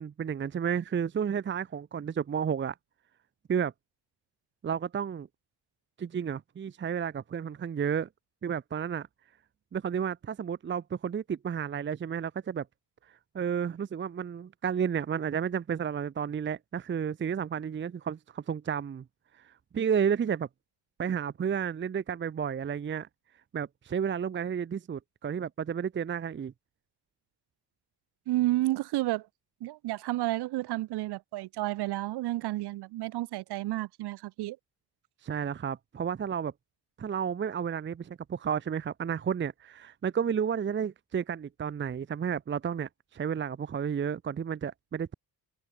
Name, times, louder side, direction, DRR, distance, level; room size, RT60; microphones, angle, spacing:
voice 1, 0.0-2.7 3.5-3.7 4.6-5.3 6.0-8.1 8.4-9.1 9.7-12.7 13.3-19.0 19.4-20.5 21.0-23.1 23.5-26.5 35.2-36.5 37.0-45.1, right 7 dB, 30° right, 0.7 m, -32 dB
voice 2, 28.3-29.3 29.6-34.6, right 17 dB, 75° right, 0.7 m, -31 dB
cardioid pair, 125°, 40 cm